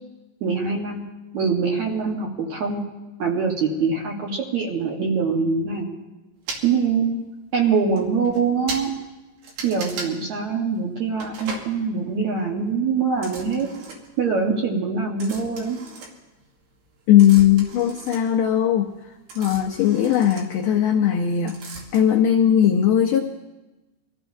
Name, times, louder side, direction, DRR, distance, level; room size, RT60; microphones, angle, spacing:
voice 1, 0.4-1.0 1.3-2.8 3.2-6.0 6.6-7.1 7.5-9.0 9.6-13.7 14.2-15.8, right 5 dB, 60° right, -1 dB, 2.0 m, -23 dB
sound 1, 6.5-6.6 7.5-7.6 8.0-8.1 8.2-8.4 8.7-8.9 9.4-10.1 11.2-11.7 13.1-14.2 15.2-16.6 16.9-21.2 21.5-22.0, right 3 dB, 85° right, 4.0 m, -37 dB
voice 2, 17.1-18.9 19.4-21.6 21.9-23.2, left 10 dB, 85° left, 1 dB, 1.8 m, -18 dB
24.5 x 15.5 x 2.7 m, 1.1 s
omnidirectional pair, 4.8 m